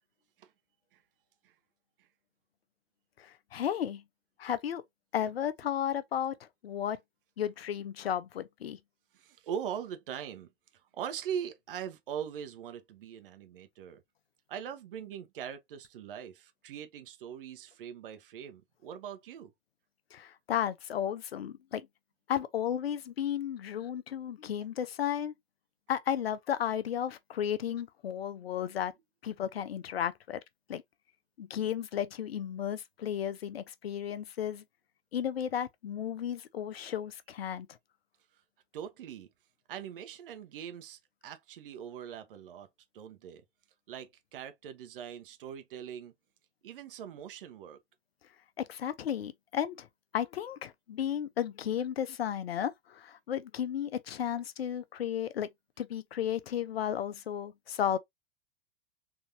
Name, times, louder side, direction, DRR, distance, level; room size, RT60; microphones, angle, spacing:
voice 1, 3.2-4.0 4.4-4.8 5.1-6.3 6.6-7.0 7.4-8.8 20.1-21.9 22.3-25.3 25.9-28.9 29.2-30.4 30.7-30.8 31.4-34.6 35.1-37.7 48.6-49.9 50.1-55.5 55.8-58.0, left 9 dB, 70° left, 0.6 m, -33 dB
voice 2, 9.1-10.5 10.9-14.0 14.5-19.5 38.7-39.3 39.7-42.7 42.9-43.4 43.9-46.1 46.6-47.8, right 8 dB, 60° right, 0.8 m, -41 dB
3.8 x 2.8 x 2.7 m
figure-of-eight pair, 95°, 31 cm